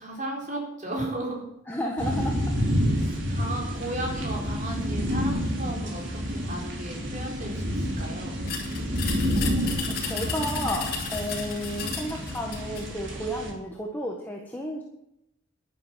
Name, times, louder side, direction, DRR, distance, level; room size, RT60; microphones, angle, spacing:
voice 1, 0.0-1.4 3.0-6.0 6.3-8.4, right 1 dB, 35° right, -1 dB, 4.3 m, -35 dB
voice 2, 1.7-2.6 9.3-14.8, equal, 10° left, -1 dB, 1.4 m, -33 dB
sound 1, 2.0-13.5, equal, 65° right, 3.3 m, -29 dB
sound 2, 8.5-12.9, left 6 dB, 45° left, 3.8 m, -34 dB
11.0 x 11.0 x 7.4 m, 0.83 s
head